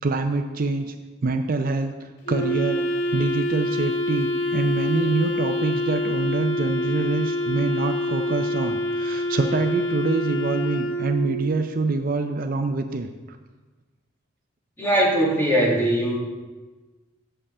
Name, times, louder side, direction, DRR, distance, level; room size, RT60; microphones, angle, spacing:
voice 1, 0.0-0.9 1.2-1.9 2.3-2.8 3.1-13.4, right 3 dB, 45° right, 6 dB, 0.5 m, -25 dB
Wind instrument woodwind instrument, 2.3-11.5, left 1 dB, 80° left, 1.6 m, -26 dB
voice 2, 14.8-16.2, right 1 dB, 10° left, -4 dB, 2.0 m, -20 dB
8.4 x 5.6 x 6.7 m, 1.3 s
head